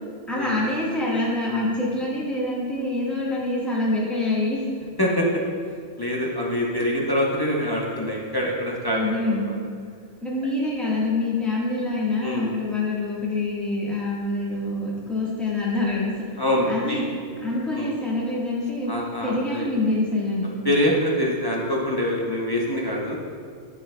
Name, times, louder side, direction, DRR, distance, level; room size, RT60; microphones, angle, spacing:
voice 1, 0.3-4.6 8.9-9.5 10.2-16.1 16.7-17.1 17.4-18.9 19.2-20.5, left 2 dB, ahead, -6 dB, 1.3 m, -25 dB
voice 2, 6.0-9.5 12.2-12.5 16.4-17.0 17.7-17.9 18.9-19.7 20.6-23.2, left 1 dB, 25° left, -4 dB, 0.6 m, -25 dB
10.5 x 5.9 x 2.2 m, 2.1 s
omnidirectional pair, 1.3 m